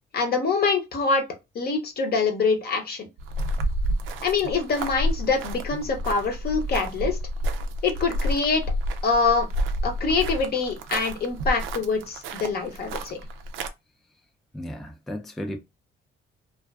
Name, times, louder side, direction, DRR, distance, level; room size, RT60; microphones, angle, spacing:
voice 1, 0.1-1.2 1.5-3.1 4.2-7.2 7.8-8.6 9.0-9.5 9.8-13.2, left 4 dB, 50° left, 0.7 m, -24 dB
sound 1, 3.2-13.7, equal, 85° right, 0.4 m, -29 dB
voice 2, 14.5-15.6, equal, ahead, 0.4 m, -34 dB
2.4 x 2.3 x 2.2 m
cardioid pair, 90°, 20 cm